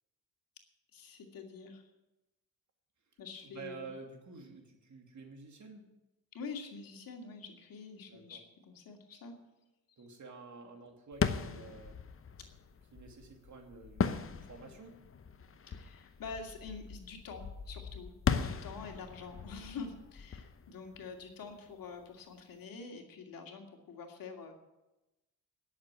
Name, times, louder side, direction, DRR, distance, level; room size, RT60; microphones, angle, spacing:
voice 1, 0.9-1.8 3.2-3.9 6.3-9.3 15.7-24.5, left 4 dB, 65° left, 3 dB, 2.5 m, -46 dB
voice 2, 3.4-5.9 8.1-8.4 10.0-12.0 12.9-15.0, right 4 dB, 50° right, 3 dB, 2.7 m, -50 dB
sound 1, 11.1-21.7, left 6 dB, 35° left, 0.9 m, -38 dB
10.5 x 7.4 x 9.5 m, 0.98 s
supercardioid pair, 65°, 37 cm